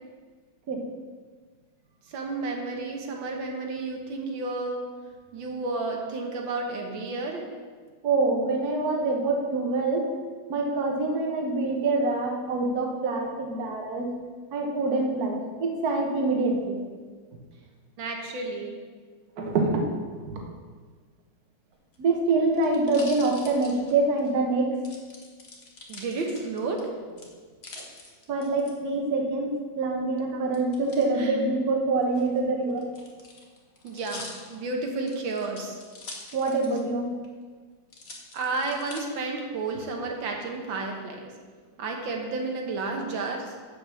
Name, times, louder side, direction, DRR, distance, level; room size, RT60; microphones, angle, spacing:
voice 1, 2.1-4.9 5.3-7.5 18.0-18.8 25.9-26.8 31.2-31.3 33.8-35.8 38.3-41.3 41.8-43.6, right 3 dB, 85° right, 1 dB, 1.9 m, -31 dB
voice 2, 8.0-10.1 10.5-14.2 14.5-16.8 19.4-20.0 20.2-20.4 22.0-24.8 27.8-27.9 28.3-32.9 36.3-37.2, right 3 dB, 55° right, 1 dB, 1.5 m, -25 dB
sound 1, 21.8-24.3 24.8-26.8 27.2-28.7 30.5-31.1 32.0-36.9 37.2-37.3 37.9-39.0 39.6-40.2, left 3 dB, 40° left, 1.2 m, -45 dB
8.1 x 6.5 x 6.2 m, 1.5 s
omnidirectional pair, 2.0 m